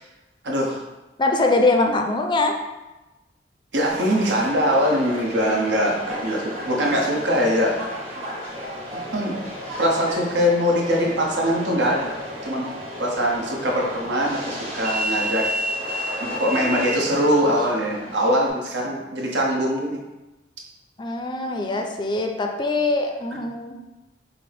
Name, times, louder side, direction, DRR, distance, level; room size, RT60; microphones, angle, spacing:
voice 1, 0.4-0.8 3.7-7.8 9.1-9.4 9.8-12.2 12.4-12.7 13.0-15.5 16.2-20.0, equal, 80° right, -1 dB, 0.9 m, -22 dB
voice 2, 1.2-2.6 21.0-23.8, left 2 dB, 25° left, 4 dB, 0.4 m, -22 dB
Subway metro underground, 3.9-18.5, equal, 35° right, 1.2 m, -32 dB
5.9 x 2.1 x 3.4 m, 1.0 s
head